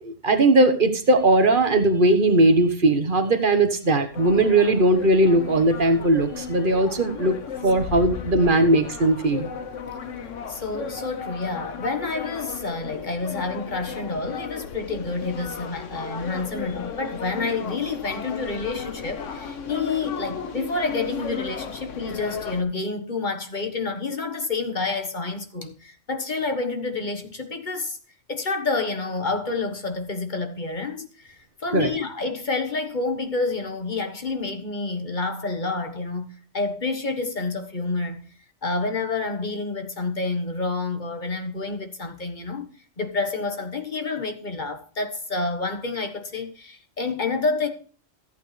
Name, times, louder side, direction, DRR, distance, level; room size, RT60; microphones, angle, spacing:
voice 1, 0.0-7.3 7.6-9.5 31.7-31.9, right 2 dB, 45° right, 1.3 m, -19 dB
sound 1, 4.1-22.6, left 6 dB, 80° left, 1.3 m, -35 dB
voice 2, 10.5-28.0 28.3-38.3 38.6-42.7 43.0-47.7, left 3 dB, 40° left, 1.4 m, -29 dB
14.5 x 8.5 x 3.3 m
omnidirectional pair, 1.3 m